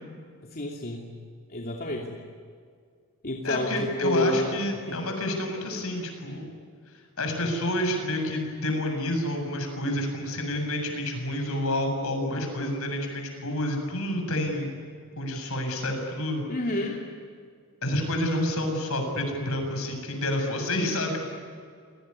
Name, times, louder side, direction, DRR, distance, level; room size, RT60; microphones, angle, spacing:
voice 1, 0.5-1.1 1.5-2.2 3.2-4.5 4.9-5.0 16.5-17.0, left 1 dB, 45° left, -1 dB, 2.8 m, -29 dB
voice 2, 3.4-6.5 7.2-14.7 15.2-16.4 17.8-21.2, left 1 dB, 70° left, 4 dB, 7.5 m, -29 dB
29.0 x 20.0 x 9.9 m, 2.1 s
head